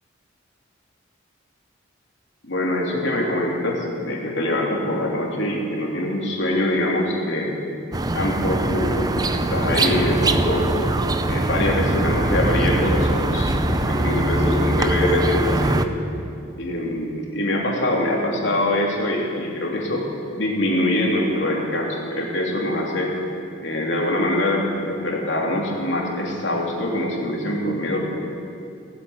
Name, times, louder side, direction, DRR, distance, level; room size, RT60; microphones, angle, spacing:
voice 1, 2.4-7.6 8.1-10.7 11.3-15.8 16.6-20.0 20.3-23.1 23.6-28.0, left 1 dB, 70° left, -2 dB, 2.9 m, -24 dB
sound 1, 7.9-15.9, right 2 dB, 20° right, 0.5 m, -22 dB
17.0 x 8.3 x 8.7 m, 2.5 s
head